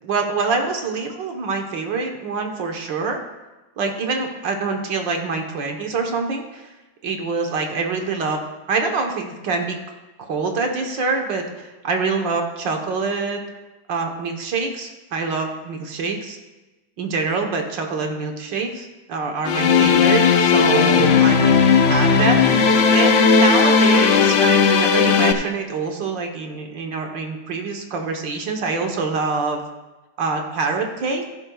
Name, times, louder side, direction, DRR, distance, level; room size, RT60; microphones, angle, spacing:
voice 1, 0.0-3.2 3.8-6.7 7.0-8.4 8.7-9.8 10.2-13.4 13.9-16.4 17.0-29.7 30.2-31.2, right 4 dB, 65° right, 3 dB, 1.8 m, -25 dB
sound 1, 19.4-25.3, left 5 dB, 65° left, 0.7 m, -15 dB
15.0 x 10.5 x 2.4 m, 1.1 s
omnidirectional pair, 2.2 m